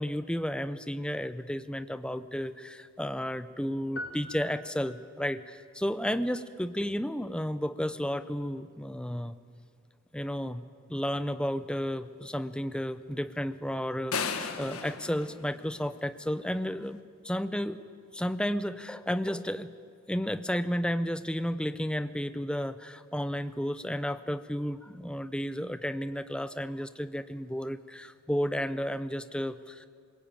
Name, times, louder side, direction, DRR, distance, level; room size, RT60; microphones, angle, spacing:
voice 1, 0.0-9.4 10.1-10.6 10.9-17.8 18.1-19.7 20.1-29.9, equal, 5° left, 12 dB, 0.6 m, -32 dB
sound 1, 4.0-5.4, left 1 dB, 45° left, 1.8 m, -43 dB
sound 2, 14.1-16.3, left 5 dB, 85° left, 1.6 m, -35 dB
22.5 x 20.0 x 8.9 m, 2.2 s
head